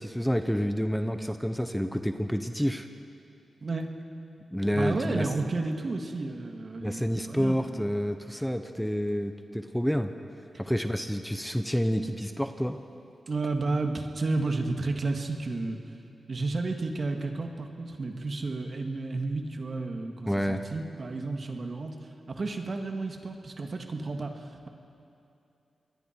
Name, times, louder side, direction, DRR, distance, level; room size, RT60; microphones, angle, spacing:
voice 1, 0.0-2.9 4.5-5.3 6.8-10.1 10.6-12.9 20.3-20.6, equal, 5° left, 8 dB, 0.9 m, -29 dB
voice 2, 4.7-7.8 13.3-15.8 16.3-22.0 22.3-24.7, right 3 dB, 50° right, 4 dB, 1.9 m, -32 dB
27.0 x 21.0 x 4.6 m, 2.7 s
cardioid pair, 60°, 0 cm